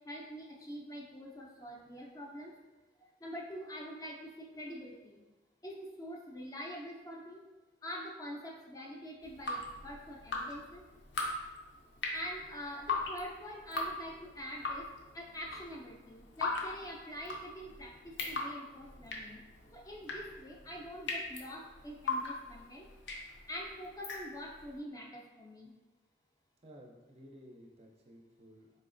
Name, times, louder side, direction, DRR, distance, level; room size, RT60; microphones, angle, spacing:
voice 1, 0.1-2.5 3.2-5.2 5.6-7.4 7.8-10.8 12.1-14.9 15.1-19.4 19.7-22.9 23.5-25.7, equal, 20° left, -1 dB, 0.4 m, -45 dB
Drip, 9.2-24.7, left 3 dB, 70° left, 0.5 m, -40 dB
voice 2, 26.6-28.7, equal, 35° right, 0 dB, 0.5 m, -55 dB
4.1 x 3.0 x 2.5 m, 1.1 s
head